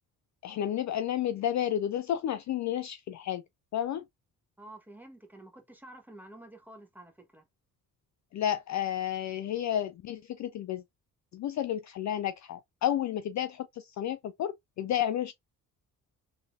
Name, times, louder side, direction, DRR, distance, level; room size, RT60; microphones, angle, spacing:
voice 1, 0.4-3.4 3.7-4.1 8.3-10.8 11.3-15.3, left 11 dB, 40° left, 0.5 m, -31 dB
voice 2, 4.6-7.4, right 1 dB, 5° right, 1.2 m, -50 dB
4.0 x 3.2 x 2.5 m
hypercardioid pair, 40°, 45 cm